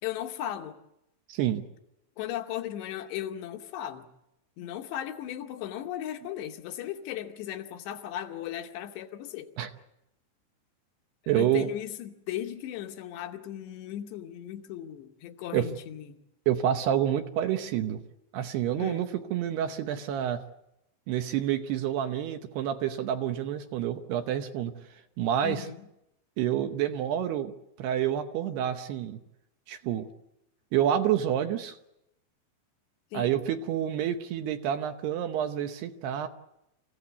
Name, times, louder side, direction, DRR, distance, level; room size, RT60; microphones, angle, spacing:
voice 1, 0.0-0.8 2.2-4.1 4.6-9.5 11.3-16.2 18.8-19.0 25.4-25.8 33.1-33.4, left 11 dB, 75° left, 3.0 m, -36 dB
voice 2, 1.3-1.6 9.6-9.7 11.3-11.7 15.5-15.7 16.5-18.0 18.3-20.4 21.1-25.7 26.4-27.5 27.8-29.2 29.7-30.1 30.7-31.8 33.1-36.3, right 10 dB, 75° right, 2.7 m, -28 dB
26.5 x 15.5 x 8.3 m
omnidirectional pair, 5.3 m